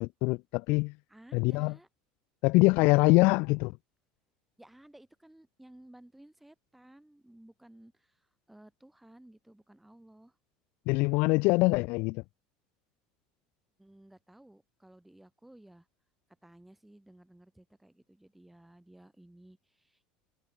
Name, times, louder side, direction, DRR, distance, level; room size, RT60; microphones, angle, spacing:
voice 1, 0.0-0.9 1.3-1.7 2.4-3.8 10.9-12.2, left 26 dB, 65° left, 0.5 m, -24 dB
voice 2, 1.1-1.9 4.6-10.4 13.8-15.9 16.4-20.1, right 1 dB, 5° right, 4.4 m, -56 dB
supercardioid pair, 120°, 3 cm